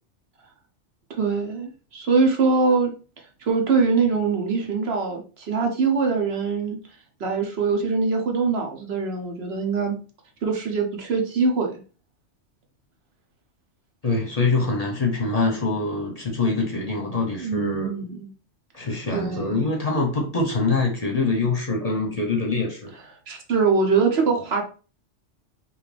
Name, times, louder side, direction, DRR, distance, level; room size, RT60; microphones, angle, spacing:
voice 1, 1.1-2.9 3.4-6.8 7.2-10.0 10.4-11.8 17.4-18.3 19.1-19.7 23.3-24.6, right 4 dB, 60° right, 1.1 m, -23 dB
voice 2, 14.0-17.9 18.7-22.9, left 3 dB, 35° left, 0.8 m, -24 dB
5.2 x 2.4 x 3.3 m
omnidirectional pair, 1.2 m